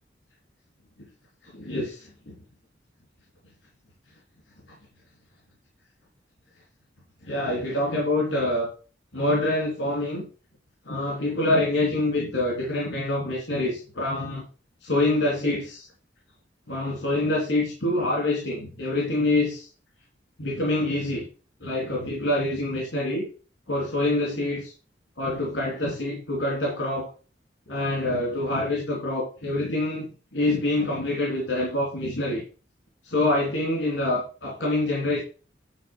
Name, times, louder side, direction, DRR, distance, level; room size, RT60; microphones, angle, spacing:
voice 1, 1.4-2.3 4.7-4.8 7.2-8.7 9.1-10.3 10.8-14.4 14.8-15.9 16.7-19.7 20.4-21.3 21.6-23.3 23.7-24.7 25.2-27.1 27.7-30.0 30.3-32.4 33.0-35.2, left 2 dB, 70° left, -3 dB, 3.4 m, -26 dB
11.0 x 3.9 x 6.2 m, 0.35 s
head